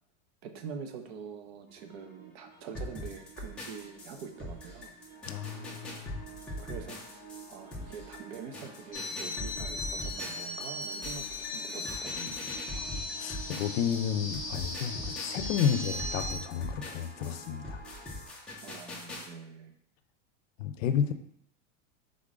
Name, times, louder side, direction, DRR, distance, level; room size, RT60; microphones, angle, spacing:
voice 1, 0.4-5.0 6.6-7.2 7.5-12.5 18.6-19.7, right 6 dB, 55° right, 6 dB, 0.7 m, -45 dB
sound 1, 1.7-18.3, right 4 dB, 25° right, 1.7 m, -52 dB
sound 2, 2.7-14.0 14.3-19.3, left 1 dB, 5° left, 0.4 m, -42 dB
voice 2, 5.3-6.2 12.7-17.8 20.6-21.1, left 8 dB, 80° left, 9 dB, 0.6 m, -32 dB
sound 3, 8.9-16.4, left 2 dB, 20° left, 0.8 m, -38 dB
3.7 x 3.7 x 3.6 m, 0.72 s
supercardioid pair, 160°, 38 cm